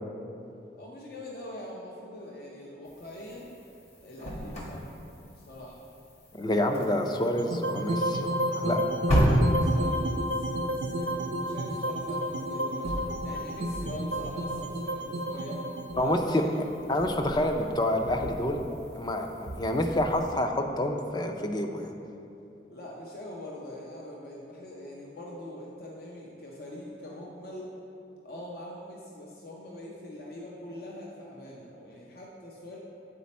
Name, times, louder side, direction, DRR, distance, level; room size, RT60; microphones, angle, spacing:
voice 1, 0.7-3.6 4.0-4.9 5.3-5.8 8.9-13.0 13.2-15.6 15.9-16.6 22.7-27.7 28.2-32.8, left 1 dB, 60° left, -3 dB, 0.7 m, -43 dB
sound 1, 2.9-20.3, equal, 40° left, 1.2 m, -34 dB
voice 2, 6.3-8.8 16.0-16.4 16.9-18.6 18.9-21.9, left 1 dB, 25° left, 4 dB, 0.4 m, -28 dB
sound 2, 7.4-17.6, equal, 65° right, 0.5 m, -31 dB
8.4 x 4.2 x 4.2 m, 2.8 s
head